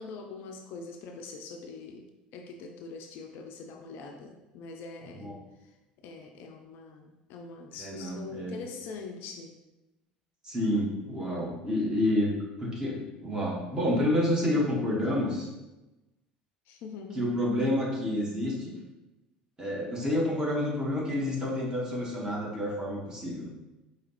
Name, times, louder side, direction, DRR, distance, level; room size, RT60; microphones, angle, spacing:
voice 1, 0.0-5.3 6.0-9.5 16.7-17.3, left 4 dB, 50° left, 4 dB, 0.4 m, -43 dB
voice 2, 7.8-8.5 10.4-12.3 12.6-15.5 17.1-18.8 19.6-23.5, left 1 dB, 15° right, -4 dB, 1.3 m, -29 dB
4.9 x 2.8 x 3.0 m, 1.0 s
figure-of-eight pair, 65°, 5 cm